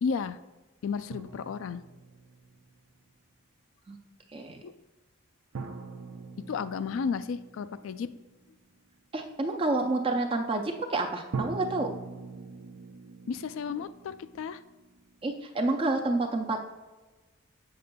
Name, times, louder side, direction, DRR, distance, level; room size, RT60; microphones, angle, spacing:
voice 1, 0.0-0.4 0.8-1.8 4.6-4.7 6.5-8.1 13.3-14.6, left 5 dB, 65° left, 13 dB, 0.3 m, -33 dB
sound 1, 1.1-2.9 5.5-8.4 11.3-15.1, right 4 dB, 80° right, 0.5 m, -42 dB
voice 2, 9.1-11.9 15.2-16.7, right 2 dB, 25° right, 4 dB, 0.4 m, -29 dB
7.6 x 6.6 x 2.2 m, 1.2 s
head